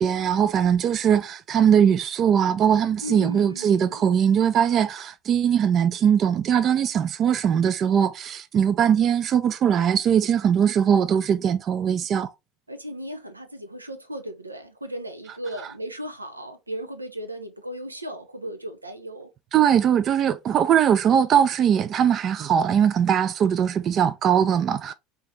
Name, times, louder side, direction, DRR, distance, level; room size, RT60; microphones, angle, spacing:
voice 1, 0.0-12.3 19.5-24.9, right 8 dB, 40° right, 0.4 m, -21 dB
voice 2, 3.0-4.2 12.7-19.3, equal, 90° right, 0.7 m, -36 dB
5.6 x 2.8 x 3.3 m
figure-of-eight pair, 70°, 0 cm